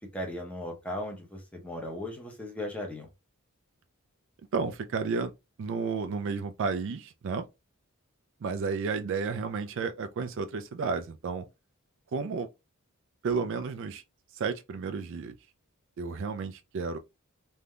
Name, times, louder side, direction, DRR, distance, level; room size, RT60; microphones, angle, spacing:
voice 1, 0.1-3.1, left 1 dB, 5° left, 0.8 m, -37 dB
voice 2, 4.5-5.3 5.6-7.5 8.4-11.5 12.1-12.5 13.2-14.0 14.3-15.3 16.0-17.0, right 5 dB, 60° right, 0.3 m, -32 dB
3.4 x 2.6 x 2.2 m
head